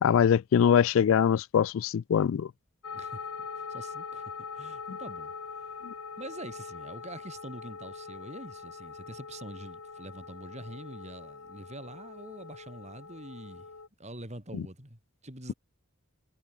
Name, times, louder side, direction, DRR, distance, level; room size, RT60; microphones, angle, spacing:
voice 1, 0.0-2.5 5.8-5.9 14.5-14.6, left 8 dB, 65° left, 0.3 m, -23 dB
sound 1, 2.8-13.9, left 5 dB, 90° left, 1.8 m, -42 dB
voice 2, 2.9-5.7 6.2-13.7 14.0-15.5, right 1 dB, 30° right, 6.9 m, -45 dB
head